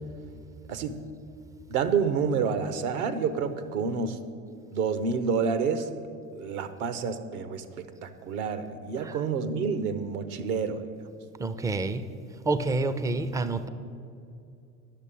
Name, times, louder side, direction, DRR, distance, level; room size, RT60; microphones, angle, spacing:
voice 1, 1.7-4.2 4.7-5.9 6.4-10.9, right 5 dB, 70° right, 11 dB, 1.0 m, -29 dB
voice 2, 11.4-12.0 12.5-13.7, right 3 dB, 10° right, 12 dB, 0.3 m, -28 dB
9.7 x 6.9 x 8.4 m, 2.5 s
hypercardioid pair, 80°, 45 cm